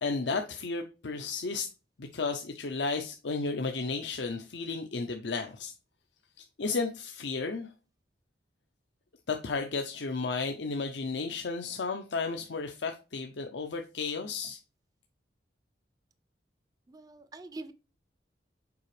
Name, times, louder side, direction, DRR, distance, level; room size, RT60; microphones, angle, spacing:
voice 1, 0.0-1.7 2.0-5.7 6.4-7.7 9.3-14.6, left 4 dB, 80° left, 5 dB, 0.6 m, -33 dB
voice 2, 16.9-17.7, right 2 dB, 20° right, 11 dB, 0.4 m, -44 dB
7.1 x 4.9 x 3.2 m, 0.32 s
head